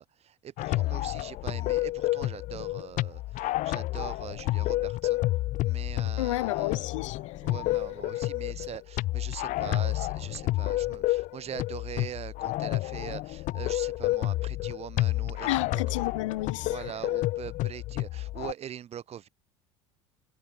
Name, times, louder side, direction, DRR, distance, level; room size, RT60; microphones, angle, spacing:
voice 1, 0.0-5.2 5.6-6.9 7.4-15.8 16.6-19.3, right 10 dB, 40° right, 5.0 m, -42 dB
sound 1, 0.6-18.5, left 17 dB, 55° left, 2.4 m, -30 dB
voice 2, 6.2-7.2 15.4-16.8, left 16 dB, 75° left, 4.0 m, -31 dB
hypercardioid pair, 75°, 16 cm